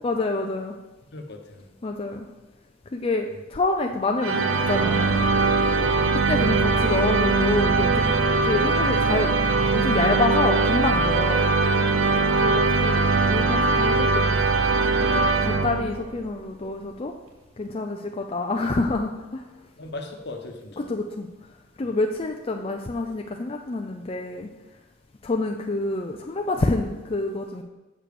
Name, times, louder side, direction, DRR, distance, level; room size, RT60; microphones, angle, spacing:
voice 1, 0.0-0.8 1.8-2.3 2.9-5.3 6.1-8.2 8.4-9.3 9.7-11.5 12.4-14.2 15.1-17.1 17.6-19.4 20.8-21.3 21.8-24.5 25.2-27.6, left 2 dB, 30° left, 3 dB, 0.4 m, -27 dB
voice 2, 1.1-1.7 5.7-6.0 12.0-12.2 19.8-20.9 21.8-22.0, left 2 dB, 55° left, 4 dB, 1.0 m, -38 dB
sound 1, 4.2-16.2, right 3 dB, 85° right, 0.7 m, -21 dB
7.4 x 5.0 x 6.7 m, 1.1 s
head